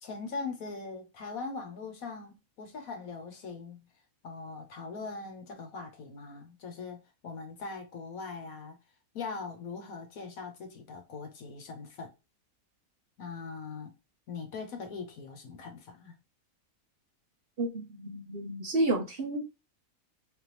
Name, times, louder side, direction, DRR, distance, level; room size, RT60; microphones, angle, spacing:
voice 1, 0.0-3.9 4.2-8.8 9.1-12.1 13.2-13.9 14.3-16.1, left 4 dB, 75° left, 1.5 m, -41 dB
voice 2, 17.6-19.4, right 2 dB, 45° right, 1.0 m, -31 dB
4.1 x 3.6 x 3.0 m
omnidirectional pair, 1.5 m